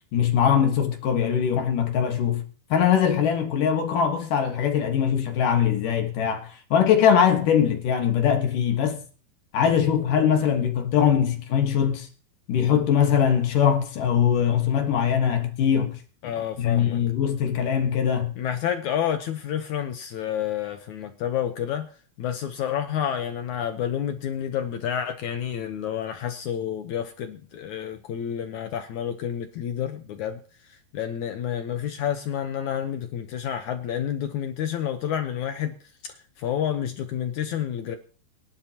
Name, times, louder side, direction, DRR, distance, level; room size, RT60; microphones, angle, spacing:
voice 1, 0.1-2.4 2.7-9.0 9.5-12.1 12.5-16.0 16.6-18.3, left 8 dB, 60° left, 2.7 m, -22 dB
voice 2, 16.2-17.0 18.4-21.9 22.2-35.7 36.0-38.0, left 9 dB, 80° left, 1.7 m, -29 dB
24.5 x 11.5 x 2.9 m
omnidirectional pair, 4.6 m